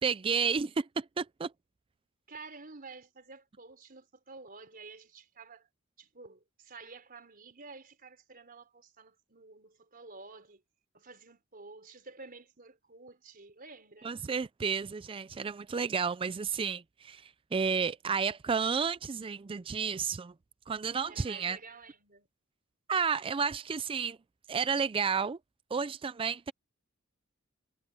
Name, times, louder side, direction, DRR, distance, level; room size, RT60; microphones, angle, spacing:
voice 1, 0.0-1.5 14.0-20.3 20.7-21.6 22.9-24.2 24.5-25.4 25.7-26.5, right 6 dB, 25° right, 0.4 m, -31 dB
voice 2, 2.3-5.7 6.0-10.6 10.9-14.1 21.1-22.3, right 3 dB, 45° right, 4.5 m, -51 dB
head